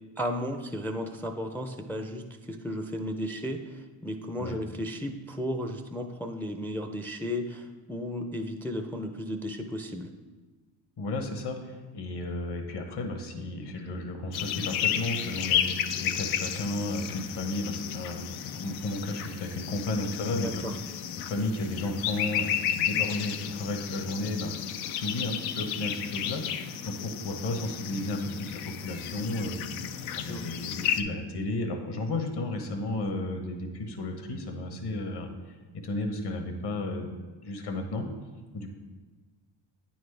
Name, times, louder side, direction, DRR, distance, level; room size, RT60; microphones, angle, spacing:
voice 1, 0.2-10.1 20.4-20.7 30.3-30.5, equal, 5° left, 6 dB, 0.4 m, -34 dB
voice 2, 11.0-35.3 35.7-37.1 37.4-38.1 38.5-38.7, left 2 dB, 60° left, 5 dB, 1.2 m, -33 dB
sound 1, 14.3-31.0, left 9 dB, 85° left, 0.5 m, -33 dB
9.0 x 4.3 x 3.3 m, 1.3 s
supercardioid pair, 65°, 47 cm